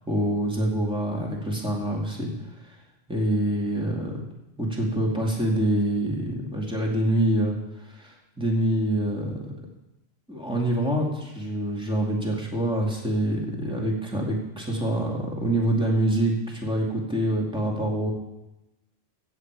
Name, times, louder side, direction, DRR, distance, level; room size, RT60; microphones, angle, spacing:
voice 1, 0.1-2.3 3.1-4.2 4.6-7.6 7.9-9.5 10.3-18.1, right 1 dB, 5° right, -2 dB, 2.4 m, -26 dB
15.5 x 8.6 x 4.8 m, 0.96 s
omnidirectional pair, 1.1 m